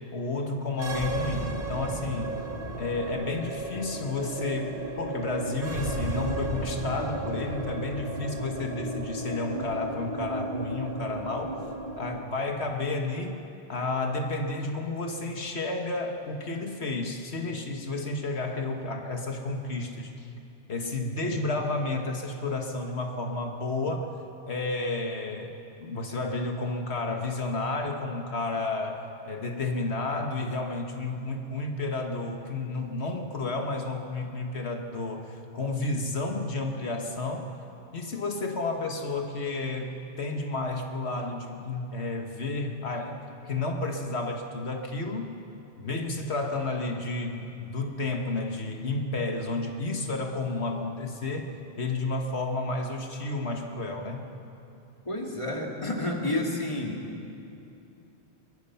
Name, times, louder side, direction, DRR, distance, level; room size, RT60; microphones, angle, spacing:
voice 1, 0.1-2.4 2.8-11.6 12.0-13.4 13.7-20.3 20.7-24.1 24.5-37.5 37.9-43.2 43.4-45.3 45.8-51.5 51.8-54.3, left 2 dB, 75° left, 3 dB, 1.7 m, -31 dB
sound 1, 0.7-12.2, right 1 dB, 55° right, 1.6 m, -34 dB
voice 2, 55.1-57.0, left 1 dB, 30° left, 0 dB, 2.5 m, -30 dB
22.0 x 22.0 x 5.7 m, 2.8 s
omnidirectional pair, 1.1 m